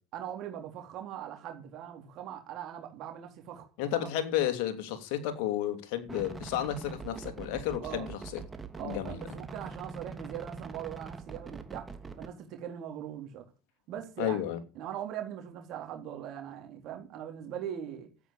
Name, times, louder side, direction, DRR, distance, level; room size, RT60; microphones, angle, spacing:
voice 1, 0.1-3.7 4.0-4.1 7.8-8.1 8.7-11.9 12.2-13.4 13.9-14.4 14.8-18.1, right 10 dB, 60° right, 3.8 m, -40 dB
voice 2, 3.8-8.4 8.8-9.2 14.2-14.6, left 11 dB, 70° left, 3.0 m, -32 dB
sound 1, 6.1-12.3, right 4 dB, 20° right, 2.6 m, -43 dB
13.0 x 9.1 x 8.4 m
supercardioid pair, 95°, 0 cm